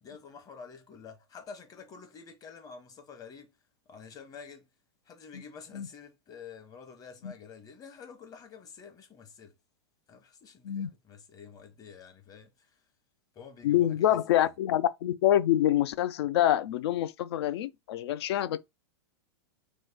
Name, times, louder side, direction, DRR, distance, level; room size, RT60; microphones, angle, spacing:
voice 1, 0.0-3.5 3.9-4.7 5.1-9.5 10.1-12.5 13.3-14.5, left 6 dB, 25° left, 0.9 m, -49 dB
voice 2, 13.6-18.6, left 12 dB, 70° left, 0.4 m, -26 dB
3.1 x 2.1 x 3.5 m
hypercardioid pair, 115°, 14 cm